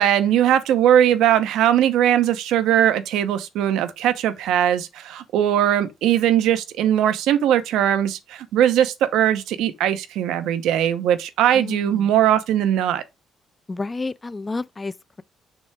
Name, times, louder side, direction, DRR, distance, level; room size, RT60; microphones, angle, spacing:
voice 1, 0.0-13.0, right 10 dB, 85° right, 0.8 m, -20 dB
voice 2, 11.5-12.1 13.7-15.2, left 3 dB, 20° left, 0.4 m, -30 dB
6.0 x 3.4 x 4.7 m
cardioid pair, 135°, 0 cm